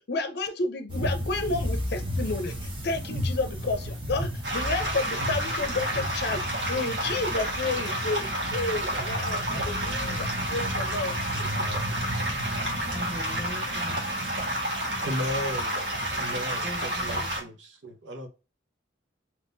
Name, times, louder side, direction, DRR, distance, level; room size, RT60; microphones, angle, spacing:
voice 1, 0.0-11.8 14.8-14.9, left 3 dB, 60° left, 0.5 m, -31 dB
sound 1, 0.9-17.4, equal, 25° right, 1.0 m, -34 dB
sound 2, 4.4-17.4, right 1 dB, 65° right, 1.4 m, -30 dB
voice 2, 10.0-10.7 12.9-14.0 16.6-17.3, equal, 5° left, 0.8 m, -40 dB
voice 3, 15.0-15.8 16.1-18.3, equal, 85° right, 0.8 m, -34 dB
3.6 x 2.9 x 2.6 m
head